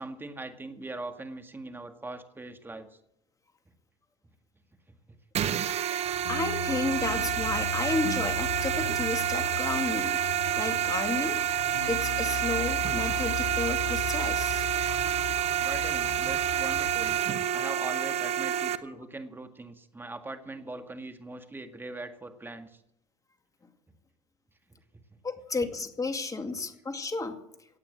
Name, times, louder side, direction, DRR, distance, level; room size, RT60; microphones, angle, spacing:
voice 1, 0.0-2.9 4.9-5.0 15.6-17.2 17.5-22.8, right 2 dB, 15° right, 7 dB, 1.9 m, -41 dB
sound 1, 5.3-18.8, right 9 dB, 45° right, 1.0 m, -28 dB
sound 2, 6.0-17.2, left 7 dB, 75° left, 1.2 m, -38 dB
voice 2, 6.2-10.2 10.6-11.4 11.9-14.7 25.2-27.4, left 3 dB, 20° left, 7 dB, 2.3 m, -32 dB
16.0 x 8.7 x 7.6 m, 0.77 s
hypercardioid pair, 80°, 15 cm